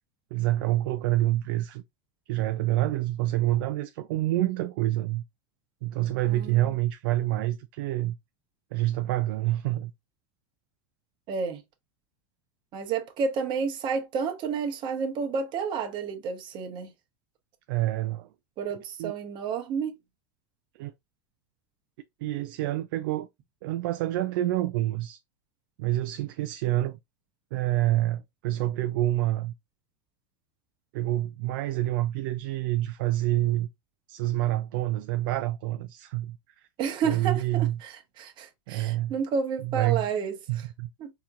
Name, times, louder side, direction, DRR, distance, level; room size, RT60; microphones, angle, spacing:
voice 1, 0.3-1.8 2.3-5.2 5.8-8.1 8.7-9.9 17.7-18.3 19.0-19.1 20.8-20.9 22.2-23.3 23.6-25.2 25.8-27.0 27.5-29.5 30.9-33.7 34.1-36.4 37.0-37.7 38.7-39.1 39.6-40.0 40.5-40.9, right 15 dB, 70° right, 0.4 m, -27 dB
voice 2, 6.2-6.6 11.3-11.6 12.7-16.9 18.6-20.0 36.8-40.7 41.0-41.1, right 6 dB, 40° right, 1.0 m, -30 dB
4.2 x 2.9 x 2.4 m
supercardioid pair, 130°, 12 cm